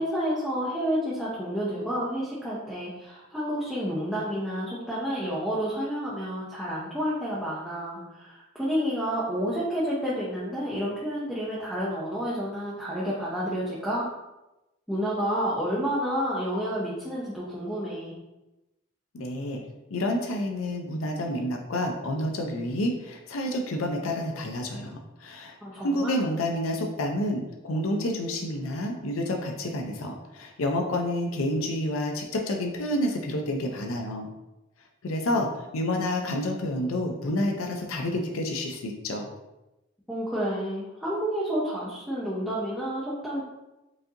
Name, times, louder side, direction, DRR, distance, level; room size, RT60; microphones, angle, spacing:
voice 1, 0.0-14.1 14.9-18.1 25.6-26.2 40.1-43.4, equal, ahead, -9 dB, 0.6 m, -30 dB
voice 2, 19.1-19.6 19.9-25.6 25.8-34.3 35.0-39.3, left 1 dB, 85° left, 3 dB, 0.5 m, -29 dB
4.7 x 2.6 x 2.7 m, 0.98 s
head